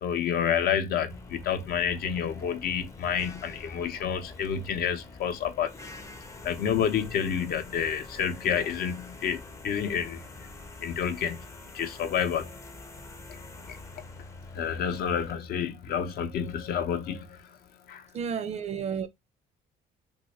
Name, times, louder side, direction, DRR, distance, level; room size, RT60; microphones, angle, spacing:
voice 1, 0.0-5.7 6.4-10.2 10.8-11.4 11.7-12.5 13.3-13.4 13.7-13.8 14.5-17.4 17.9-18.0, left 8 dB, 65° left, 0.6 m, -29 dB
sound 1, 1.1-15.3, left 2 dB, 15° left, 0.5 m, -46 dB
voice 2, 18.1-19.1, right 7 dB, 40° right, 0.4 m, -31 dB
2.4 x 2.4 x 4.1 m
cardioid pair, 110°, 17 cm